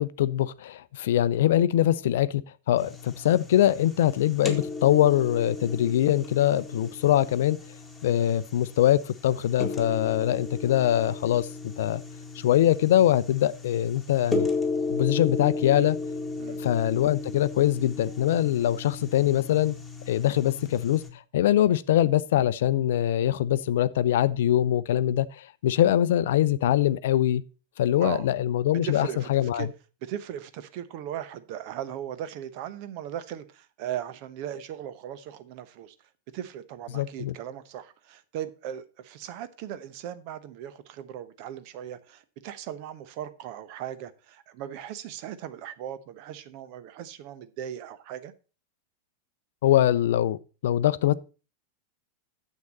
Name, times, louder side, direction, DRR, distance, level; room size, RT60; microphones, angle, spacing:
voice 1, 0.0-2.4 2.7-7.6 8.0-12.0 12.4-14.5 14.9-16.0 16.6-19.8 20.1-21.0 21.3-27.4 27.8-29.7 36.9-37.3 49.6-51.1, left 12 dB, 55° left, 0.5 m, -23 dB
sound 1, 2.8-21.1, left 3 dB, 5° left, 2.0 m, -35 dB
voice 2, 28.8-29.7 30.0-35.9 36.3-48.3, right 10 dB, 45° right, 0.9 m, -38 dB
9.5 x 7.5 x 4.1 m
figure-of-eight pair, 90°, 0 cm